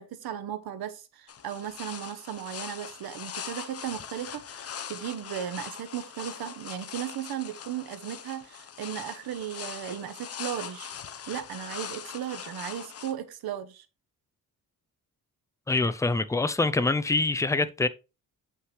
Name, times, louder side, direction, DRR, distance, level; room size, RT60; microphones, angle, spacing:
voice 1, 0.0-10.9 11.3-13.9, right 10 dB, 90° right, 1.0 m, -36 dB
sound 1, 1.3-13.1, left 8 dB, 45° left, 0.7 m, -41 dB
voice 2, 15.7-17.9, left 3 dB, 10° left, 0.4 m, -25 dB
7.4 x 5.7 x 3.2 m
wide cardioid pair, 140°, 35 cm